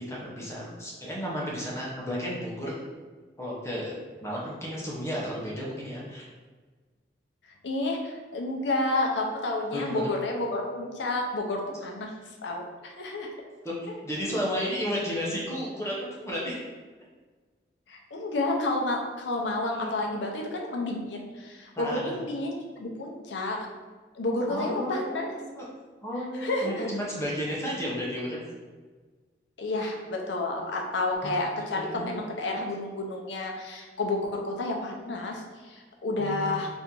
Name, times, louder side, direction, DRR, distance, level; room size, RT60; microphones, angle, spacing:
voice 1, 0.0-2.8 3.4-3.9 4.2-6.2 9.7-10.1 13.6-16.6 19.7-19.9 21.8-22.1 24.5-25.6 26.0-28.4 31.2-32.1 36.2-36.7, equal, 15° left, -5 dB, 0.6 m, -33 dB
voice 2, 7.6-13.3 17.9-23.6 24.1-25.3 26.4-26.9 29.6-36.7, left 2 dB, 85° left, 1 dB, 0.6 m, -30 dB
2.8 x 2.5 x 3.6 m, 1.4 s
head